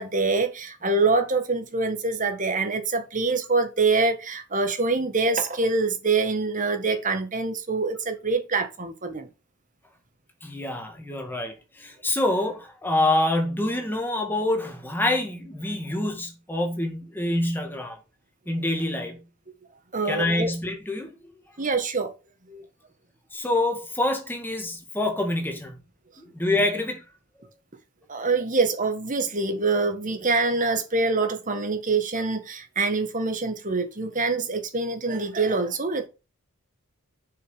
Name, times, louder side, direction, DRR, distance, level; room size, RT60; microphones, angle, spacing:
voice 1, 0.0-9.3 19.9-20.5 21.6-22.1 22.5-22.6 28.1-36.1, right 3 dB, 35° right, 1.6 m, -25 dB
voice 2, 10.4-18.0 18.5-19.2 20.1-21.1 23.3-25.8 26.2-27.0, left 1 dB, 10° left, 2.0 m, -26 dB
6.8 x 6.2 x 5.6 m
head